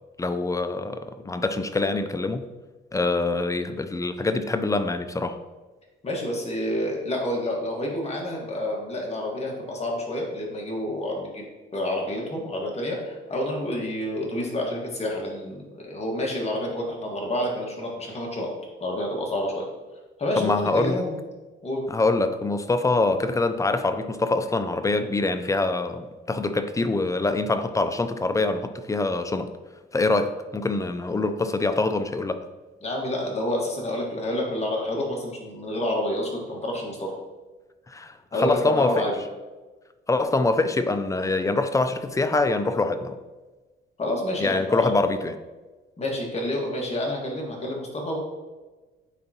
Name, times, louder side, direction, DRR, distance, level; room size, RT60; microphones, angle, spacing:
voice 1, 0.2-2.5 2.9-5.4 20.4-21.0 21.9-29.5 29.9-32.4 37.9-39.1 40.1-43.2 44.4-45.4, left 3 dB, 15° left, 10 dB, 0.5 m, -24 dB
voice 2, 6.0-11.4 11.7-18.5 18.8-19.7 20.2-21.2 21.6-21.8 32.8-37.1 38.3-39.2 44.0-44.9 46.0-48.2, left 1 dB, 30° left, -1 dB, 1.8 m, -28 dB
9.1 x 3.8 x 3.0 m, 1.2 s
cardioid pair, 90°, 20 cm